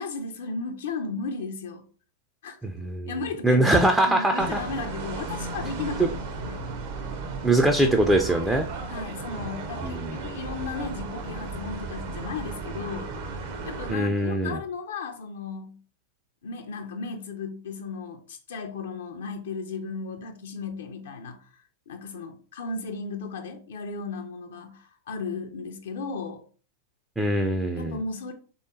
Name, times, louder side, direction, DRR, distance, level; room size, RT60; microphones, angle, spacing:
voice 1, 0.0-1.8 2.4-2.6 3.1-3.7 4.0-6.1 6.4-6.7 8.9-13.1 13.6-15.8 16.4-26.4 27.8-28.3, left 4 dB, 60° left, 0.4 m, -35 dB
voice 2, 2.6-3.1 3.4-4.6 7.4-8.7 9.8-10.2 13.9-14.6 27.2-28.0, right 1 dB, 5° right, 0.3 m, -22 dB
sound 1, 4.4-13.9, right 3 dB, 50° right, 0.6 m, -35 dB
3.3 x 2.8 x 2.6 m
figure-of-eight pair, 90°, 0 cm